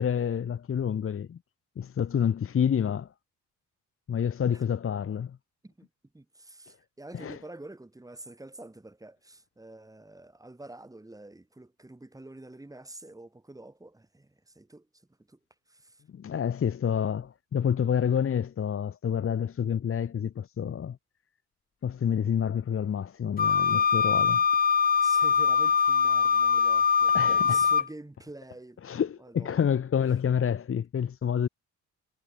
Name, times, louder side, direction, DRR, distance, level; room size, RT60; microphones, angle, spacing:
voice 1, 0.0-1.4 1.8-3.1 4.1-5.4 7.1-7.4 16.1-21.0 21.8-24.4 27.1-27.7 28.8-31.5, left 8 dB, 45° left, 1.6 m, -28 dB
voice 2, 6.1-14.9 15.3-15.4 15.7-16.0 25.0-27.2 27.4-29.8, right 2 dB, 10° right, 3.3 m, -47 dB
Wind instrument woodwind instrument, 23.4-27.9, left 6 dB, 30° left, 0.8 m, -23 dB
cardioid pair, 90°, 30 cm